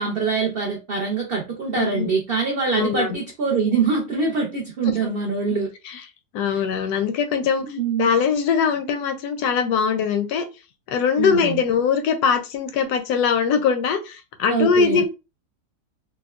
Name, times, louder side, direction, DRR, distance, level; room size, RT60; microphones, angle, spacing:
voice 1, 0.0-5.7 6.5-6.6 7.6-8.1 11.2-11.6 14.5-15.0, right 5 dB, 55° right, 0.6 m, -24 dB
voice 2, 1.7-2.1 2.8-3.2 5.9-6.0 6.3-7.7 8.0-10.5 10.9-15.1, left 6 dB, 75° left, 1.1 m, -21 dB
3.5 x 2.2 x 2.3 m
omnidirectional pair, 1.7 m